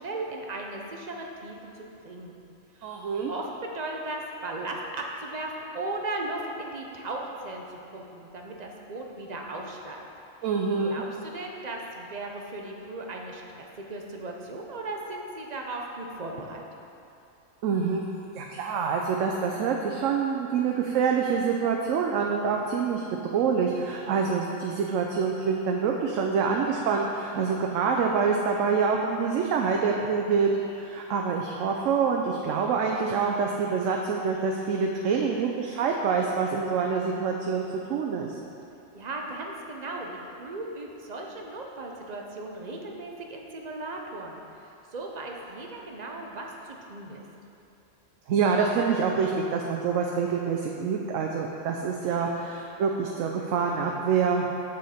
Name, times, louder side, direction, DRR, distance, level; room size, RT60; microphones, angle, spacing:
voice 1, 0.0-2.4 2.7-3.5 3.7-10.1 10.8-16.6 38.9-47.2, right 2 dB, 40° right, 0 dB, 0.7 m, -37 dB
voice 2, 2.8-3.3 10.4-11.0 17.6-18.0 18.3-23.0 23.3-37.6 37.9-38.4 48.3-54.5, right 5 dB, 80° right, 1 dB, 1.0 m, -26 dB
7.1 x 6.3 x 4.2 m, 2.7 s
omnidirectional pair, 1.3 m